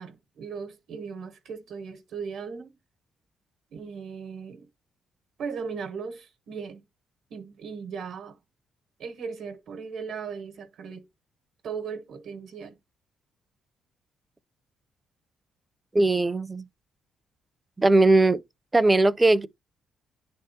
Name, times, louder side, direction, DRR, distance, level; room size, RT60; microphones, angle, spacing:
voice 1, 0.0-2.8 3.7-4.7 5.4-6.8 7.3-8.4 9.0-11.1 11.6-12.8, right 6 dB, 70° right, 1.0 m, -37 dB
voice 2, 15.9-16.6 17.8-18.4 18.7-19.5, right 2 dB, 20° right, 0.5 m, -19 dB
10.0 x 3.5 x 2.9 m
cardioid pair, 90°, 0 cm